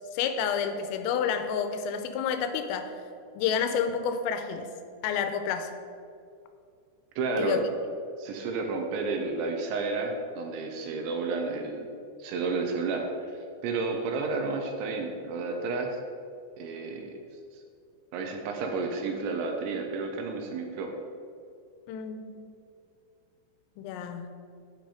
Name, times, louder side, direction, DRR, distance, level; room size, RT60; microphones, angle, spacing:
voice 1, 0.1-2.9 3.4-4.7 5.0-5.7 7.4-7.6 21.9-22.4 23.8-24.3, left 7 dB, 90° left, 8 dB, 3.4 m, -29 dB
voice 2, 7.2-7.6 8.2-11.9 12.2-13.4 13.6-16.0 16.6-17.2 17.5-17.6 18.1-20.9, right 3 dB, 80° right, 3 dB, 3.0 m, -31 dB
9.1 x 8.7 x 5.0 m, 2.5 s
omnidirectional pair, 5.8 m